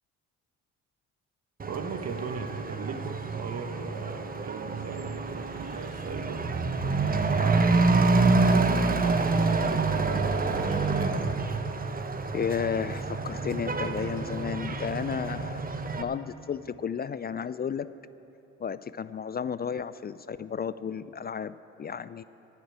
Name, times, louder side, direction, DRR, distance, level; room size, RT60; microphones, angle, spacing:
Truck / Accelerating revving vroom, 1.6-16.0, right 3 dB, 25° right, 0.9 m, -27 dB
voice 1, 1.6-6.5 7.1-11.3, right 5 dB, 50° right, 5 dB, 1.4 m, -38 dB
sound 1, 5.0-11.0, equal, 70° right, 3.6 m, -43 dB
voice 2, 12.3-17.9 18.6-22.2, left 7 dB, 30° left, 15 dB, 0.4 m, -33 dB
11.0 x 9.3 x 8.9 m, 3.0 s
supercardioid pair, 60°, 34 cm